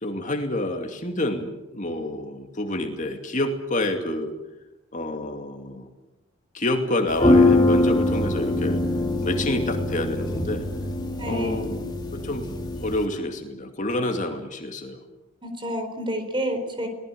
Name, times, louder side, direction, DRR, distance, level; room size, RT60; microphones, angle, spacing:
voice 1, 0.0-4.3 4.9-5.9 6.5-8.8 9.2-10.7 11.2-11.8 12.1-12.5 12.8-15.0, left 1 dB, 35° left, 4 dB, 2.4 m, -28 dB
sound 1, 7.1-13.0, left 2 dB, 20° left, 2.8 m, -23 dB
voice 2, 11.2-11.8 15.4-16.9, equal, 25° right, 7 dB, 4.2 m, -29 dB
23.5 x 19.5 x 8.6 m, 0.99 s
head